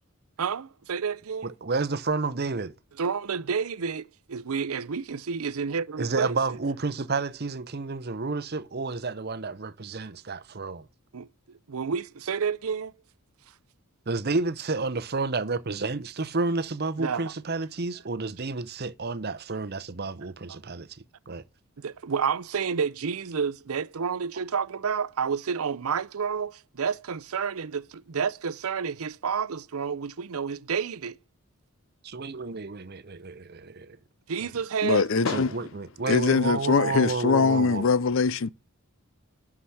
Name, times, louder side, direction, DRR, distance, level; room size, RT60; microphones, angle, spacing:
voice 1, 0.4-1.5 3.0-6.6 11.1-11.3 11.7-12.9 17.0-17.3 20.5-20.6 21.8-31.2 34.3-35.1, right 6 dB, 75° right, 0.6 m, -30 dB
voice 2, 1.4-2.7 6.0-10.8 14.1-20.9 21.3-21.4 32.0-34.0 35.3-37.9, right 3 dB, 45° right, 0.8 m, -30 dB
voice 3, 34.8-35.6 36.1-38.5, left 5 dB, 60° left, 0.5 m, -22 dB
12.0 x 4.9 x 5.7 m
head